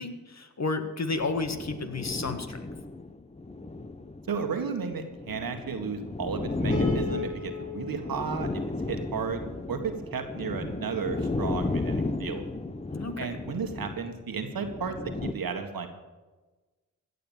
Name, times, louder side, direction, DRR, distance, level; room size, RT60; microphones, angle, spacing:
voice 1, 0.0-2.6 12.9-13.3, left 3 dB, 45° left, 8 dB, 1.6 m, -32 dB
sound 1, 1.1-15.3, left 3 dB, 15° left, 0.8 m, -34 dB
voice 2, 4.3-8.6 8.9-12.5 13.2-15.0 15.2-15.9, right 5 dB, 70° right, 6 dB, 1.7 m, -33 dB
Piano, 6.7-9.9, left 3 dB, 80° left, 3.0 m, -38 dB
16.5 x 6.8 x 7.2 m, 1.2 s
supercardioid pair, 40°, 36 cm